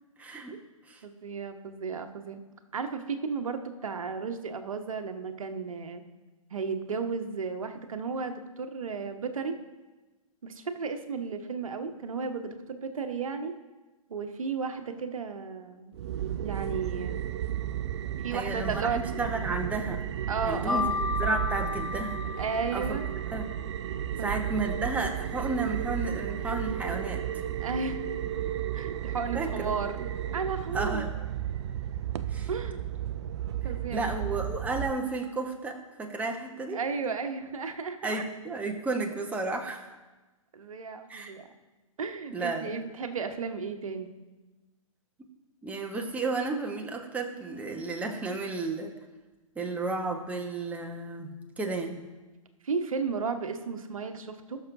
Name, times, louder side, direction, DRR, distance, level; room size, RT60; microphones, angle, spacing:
voice 1, 0.2-0.6 0.9-1.0 18.3-20.0 20.4-22.4 22.7-23.0 23.3-23.6 24.2-27.4 29.3-29.7 30.7-31.1 32.3-32.5 33.9-36.8 38.0-39.9 41.1-41.3 42.3-42.9 45.6-49.0 49.5-52.0, right 3 dB, 10° right, 2 dB, 0.9 m, -33 dB
voice 2, 1.0-2.4 2.7-6.0 6.5-9.6 10.4-13.5 14.1-15.9 16.4-17.2 18.2-19.0 20.3-21.0 22.4-23.0 24.2-24.6 27.6-28.1 28.7-30.1 30.3-31.0 32.5-32.8 33.6-34.1 36.7-38.2 40.5-41.5 42.0-44.1 52.6-54.6, right 5 dB, 70° right, 7 dB, 1.0 m, -34 dB
sound 1, 15.9-34.9, right 11 dB, 50° right, 0.4 m, -33 dB
Mallet percussion, 20.7-23.4, left 5 dB, 70° left, 3.2 m, -33 dB
19.0 x 6.5 x 2.6 m, 1.2 s
figure-of-eight pair, 120°, 18 cm